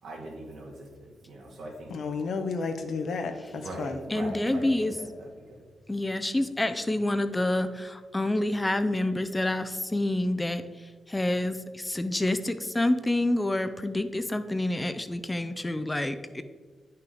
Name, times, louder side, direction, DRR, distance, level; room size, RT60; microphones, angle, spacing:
voice 1, 0.0-1.9 3.5-5.6, right 1 dB, 80° right, -1 dB, 2.1 m, -41 dB
voice 2, 1.9-3.9, left 4 dB, 70° left, 6 dB, 0.8 m, -32 dB
voice 3, 4.1-4.9 5.9-16.4, left 1 dB, 15° left, 10 dB, 0.5 m, -28 dB
9.2 x 5.7 x 3.9 m, 1.4 s
cardioid pair, 80°, 0 cm